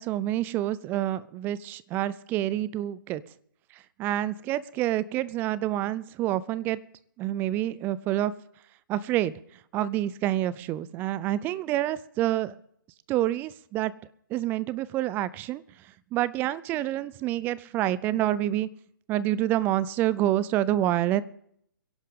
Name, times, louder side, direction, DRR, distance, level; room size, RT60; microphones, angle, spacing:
voice 1, 0.0-3.2 4.0-6.8 7.2-8.3 8.9-9.3 9.7-12.6 13.1-13.9 14.3-15.6 16.1-18.7 19.1-21.2, right 13 dB, 15° right, 20 dB, 0.4 m, -27 dB
23.5 x 11.0 x 3.7 m, 0.69 s
figure-of-eight pair, 135°, 12 cm